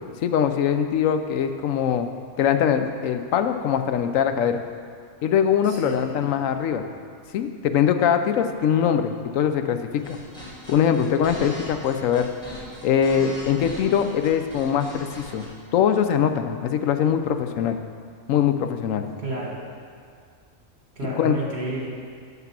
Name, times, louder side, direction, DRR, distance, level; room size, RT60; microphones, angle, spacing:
voice 1, 0.2-2.1 2.4-4.6 5.2-6.8 7.3-10.2 10.7-12.3 12.8-15.4 15.7-17.8 18.3-19.0 21.2-21.3, left 8 dB, 80° left, 8 dB, 1.0 m, -22 dB
voice 2, 5.6-5.9 19.2-19.6 20.9-21.9, right 2 dB, 50° right, -3 dB, 1.9 m, -30 dB
sound 1, 9.9-15.5, left 1 dB, 5° left, 2.3 m, -39 dB
11.0 x 3.9 x 7.4 m, 2.1 s
omnidirectional pair, 1.4 m